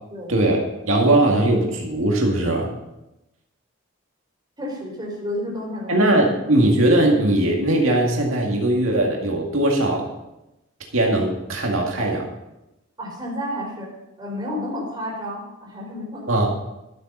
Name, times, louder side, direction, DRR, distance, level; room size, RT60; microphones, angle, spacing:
voice 1, 0.3-2.7 5.9-10.0 10.9-12.3 16.3-16.5, right 1 dB, 90° right, 0 dB, 2.1 m, -19 dB
voice 2, 4.6-5.9 13.0-13.9 14.2-16.4, left 1 dB, 20° right, -2 dB, 4.3 m, -31 dB
13.0 x 8.4 x 5.6 m, 0.94 s
head